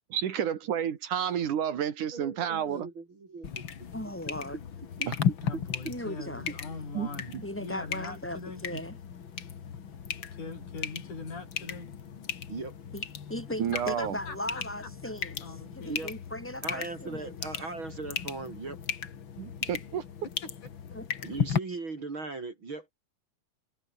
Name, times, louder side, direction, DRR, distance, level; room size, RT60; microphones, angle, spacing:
voice 1, 0.1-2.9 5.1-5.2 7.0-7.4 13.6-14.2 19.4-20.0, right 9 dB, 75° right, 3.4 m, -30 dB
voice 2, 2.1-3.9 5.0-5.1 12.5-12.8 15.9-16.1 16.6-18.8 21.2-22.9, right 3 dB, 40° right, 3.9 m, -39 dB
sound 1, 3.4-21.6, left 7 dB, 45° left, 2.1 m, -36 dB
voice 3, 3.9-4.6 5.9-6.6 7.4-9.0 12.9-13.0 13.3-15.4 15.8-17.4 20.9-21.1, left 1 dB, 5° left, 5.3 m, -38 dB
voice 4, 5.4-8.6 10.3-11.9 13.7-14.6 15.4-16.0, left 4 dB, 70° left, 8.6 m, -42 dB
omnidirectional pair, 3.6 m